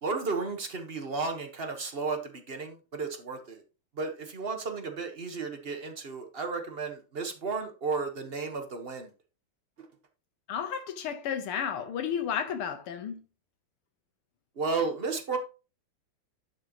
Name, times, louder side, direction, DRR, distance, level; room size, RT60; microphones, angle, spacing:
voice 1, 0.0-3.6 4.0-9.1 14.6-15.4, right 4 dB, 35° right, 1.2 m, -33 dB
voice 2, 10.5-13.2, left 8 dB, 85° left, 1.9 m, -32 dB
11.0 x 6.5 x 3.0 m
omnidirectional pair, 2.4 m